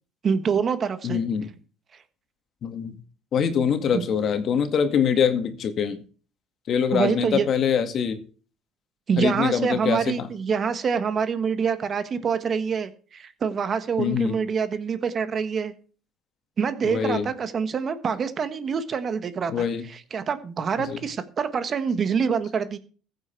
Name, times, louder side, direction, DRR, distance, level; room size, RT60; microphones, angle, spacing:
voice 1, 0.2-1.2 3.9-4.1 6.9-7.5 9.1-15.7 16.6-19.5 19.9-22.8, right 6 dB, 40° right, 11 dB, 1.5 m, -26 dB
voice 2, 1.0-1.5 2.6-3.0 3.3-6.0 6.7-8.2 9.2-10.3 14.0-14.4 16.8-17.3 19.5-19.9 20.9-21.0, left 7 dB, 50° left, 8 dB, 2.1 m, -24 dB
15.0 x 7.9 x 4.6 m, 0.39 s
supercardioid pair, 105°, 0 cm